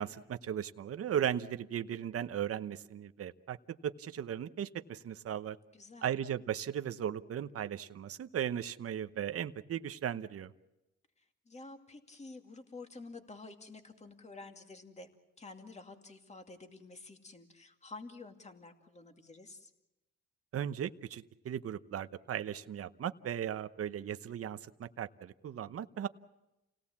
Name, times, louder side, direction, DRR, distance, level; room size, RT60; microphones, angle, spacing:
voice 1, 0.0-3.6 3.8-5.6 6.0-10.5 20.5-26.1, right 9 dB, 50° right, 10 dB, 0.9 m, -37 dB
voice 2, 5.7-6.1 11.2-15.1 15.4-19.7, left 3 dB, 20° left, 5 dB, 2.4 m, -50 dB
29.0 x 18.0 x 7.3 m, 0.96 s
cardioid pair, 90°, 30 cm